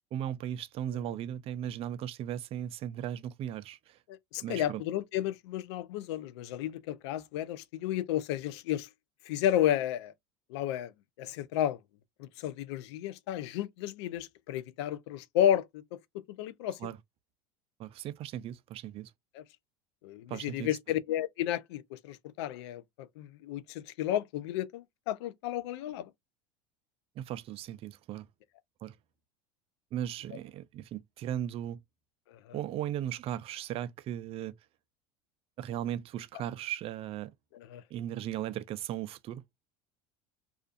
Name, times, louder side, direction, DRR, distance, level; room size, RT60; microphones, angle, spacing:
voice 1, 0.1-4.0 4.4-4.8 16.8-17.0 17.8-19.1 20.3-20.7 27.2-28.3 28.8-29.0 29.9-31.8 32.5-34.5 35.6-37.3 37.9-39.4, right 11 dB, 40° right, 0.4 m, -37 dB
voice 2, 4.1-8.9 9.3-10.1 10.5-10.9 11.2-11.8 12.2-15.8 16.3-16.8 19.3-19.4 20.0-26.1 32.3-32.6 37.5-37.8, left 11 dB, 75° left, 0.4 m, -32 dB
2.4 x 2.4 x 2.3 m
hypercardioid pair, 90°, 14 cm